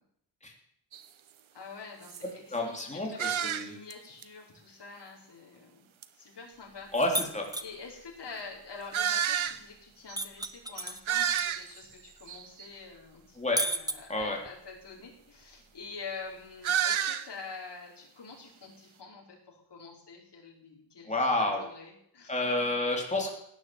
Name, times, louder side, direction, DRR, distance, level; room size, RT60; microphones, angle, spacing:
sound 1, 0.9-1.0 1.6-1.7 2.0-2.2 3.2-3.9 4.2-4.3 6.0-6.1 7.0-7.1 8.9-9.6 10.1-10.2 10.4-10.5 10.8-11.8 12.3-12.7 16.6-17.3, right 9 dB, 90° right, 1.0 m, -30 dB
voice 1, 1.5-5.9 6.1-6.9 7.6-22.3, left 4 dB, 60° left, -3 dB, 5.2 m, -46 dB
voice 2, 2.5-3.7 6.9-7.4 13.4-13.6 14.1-14.4 21.1-21.6 22.3-23.3, left 2 dB, 15° left, 0 dB, 3.5 m, -29 dB
sound 2, 7.1-7.7 10.2-11.4 11.8-11.9 13.6-14.5, right 1 dB, 10° right, 1.0 m, -32 dB
17.0 x 9.9 x 7.8 m, 0.71 s
wide cardioid pair, 120°, 46 cm